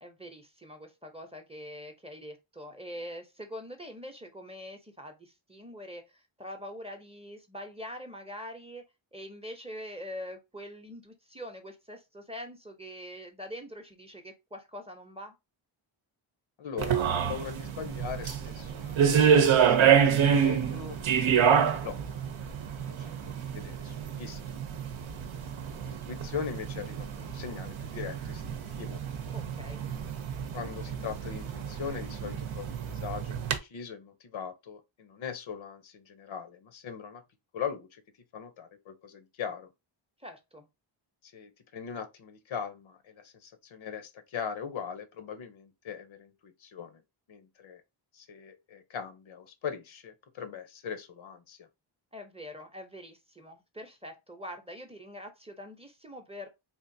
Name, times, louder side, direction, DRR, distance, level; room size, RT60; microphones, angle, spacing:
voice 1, 0.0-8.8 9.1-15.3 29.3-29.8 40.2-40.7 52.1-56.5, equal, 10° right, 0.7 m, -44 dB
voice 2, 16.6-20.1 20.4-21.0 21.3-22.3 23.0-24.6 25.8-29.0 30.5-37.2 37.5-38.0 38.3-39.7 41.2-47.0 47.3-47.8 48.1-51.7, left 7 dB, 70° left, 0.8 m, -40 dB
sound 1, 16.8-33.6, right 7 dB, 70° right, 0.7 m, -27 dB
3.6 x 2.5 x 2.6 m
cardioid pair, 70°, 49 cm